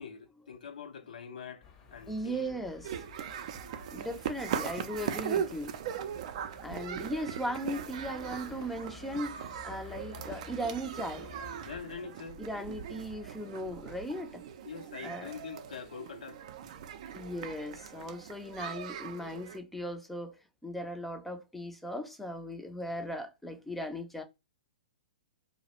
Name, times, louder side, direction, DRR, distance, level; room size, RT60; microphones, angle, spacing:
voice 1, 0.0-2.6 11.6-12.4 14.6-16.4, left 6 dB, 70° left, 0.6 m, -44 dB
sound 1, 1.6-11.8, left 6 dB, 30° left, 0.7 m, -53 dB
voice 2, 2.1-2.9 3.9-5.7 6.6-11.3 12.4-14.4 15.0-15.3 17.1-20.4 20.6-24.2, equal, 5° left, 0.5 m, -38 dB
sound 2, 2.8-19.6, right 9 dB, 50° right, 0.4 m, -40 dB
2.3 x 2.0 x 2.9 m
hypercardioid pair, 120°, 4 cm